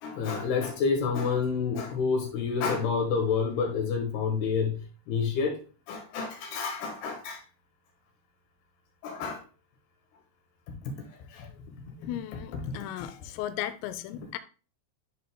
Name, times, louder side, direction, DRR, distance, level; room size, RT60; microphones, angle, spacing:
voice 1, 0.0-5.5 5.9-7.4 9.0-9.4 10.9-11.0 11.3-11.5 12.7-12.8, left 5 dB, 65° left, 2.8 m, -29 dB
voice 2, 12.0-14.4, left 12 dB, 85° left, 3.3 m, -36 dB
11.0 x 5.1 x 2.2 m
omnidirectional pair, 6.0 m